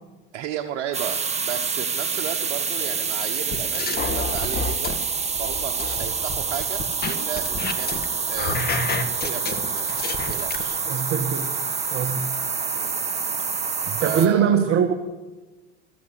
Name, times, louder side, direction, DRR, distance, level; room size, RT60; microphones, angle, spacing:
voice 1, 0.3-1.2 1.5-10.8 12.7-13.0 14.0-14.6, right 10 dB, 65° right, 3 dB, 1.2 m, -34 dB
sound 1, 0.9-14.3, right 5 dB, 20° right, 1.4 m, -27 dB
sound 2, 3.5-5.0 5.3-8.0 8.3-10.6, left 4 dB, 25° left, 1.6 m, -29 dB
voice 2, 10.9-11.5 11.9-12.3 13.9-14.9, right 7 dB, 40° right, 4 dB, 1.4 m, -22 dB
13.5 x 8.5 x 9.8 m, 1.2 s
hypercardioid pair, 90°, 36 cm